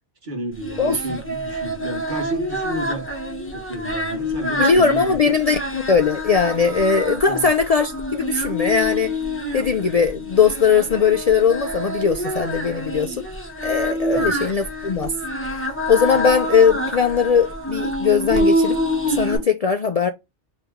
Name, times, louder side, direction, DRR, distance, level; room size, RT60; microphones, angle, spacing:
voice 1, 0.2-3.1 3.5-5.4 7.3-7.5 14.1-14.4, right 1 dB, 45° right, 1.4 m, -31 dB
Singing, 0.6-19.4, equal, 10° left, 1.1 m, -26 dB
voice 2, 4.6-9.2 9.5-13.3 13.6-15.1 15.5-18.8 19.1-20.1, left 6 dB, 60° left, 0.4 m, -19 dB
4.8 x 3.0 x 3.5 m
omnidirectional pair, 1.2 m